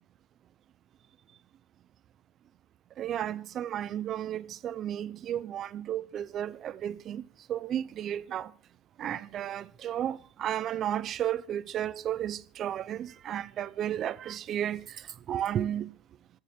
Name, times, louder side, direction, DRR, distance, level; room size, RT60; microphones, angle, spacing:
voice 1, 3.0-7.2 7.5-8.5 9.0-14.8 15.3-15.9, right 10 dB, 30° right, 0.7 m, -33 dB
26.5 x 9.7 x 4.5 m
cardioid pair, 180°, 0 cm